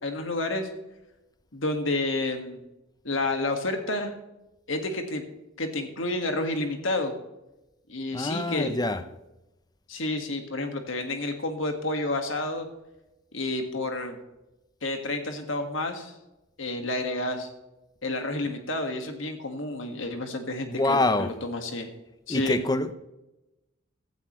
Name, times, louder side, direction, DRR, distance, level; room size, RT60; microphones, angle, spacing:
voice 1, 0.0-0.7 1.5-2.6 3.0-4.1 4.7-5.2 5.6-7.1 7.9-8.7 9.9-12.7 13.3-14.2 14.8-16.1 16.6-17.5 18.0-21.9 22.3-22.6, left 2 dB, 65° left, 1.9 m, -30 dB
voice 2, 8.1-9.0 20.7-21.3 22.3-22.9, left 2 dB, 20° left, 0.7 m, -25 dB
15.5 x 14.5 x 3.2 m
head